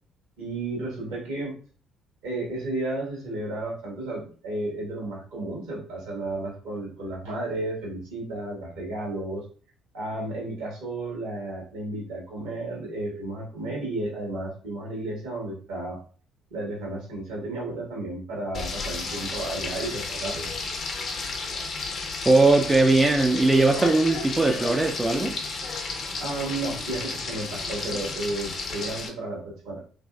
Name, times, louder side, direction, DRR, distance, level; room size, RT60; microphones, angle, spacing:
voice 1, 0.4-1.5 2.2-9.4 9.9-16.0 16.5-20.5 26.2-29.8, right 2 dB, 75° right, 1.2 m, -33 dB
Frying (food), 18.5-29.1, left 3 dB, 50° left, 0.6 m, -32 dB
voice 2, 22.3-25.3, right 2 dB, 20° right, 0.3 m, -20 dB
3.0 x 2.6 x 2.2 m
hypercardioid pair, 50°, 0 cm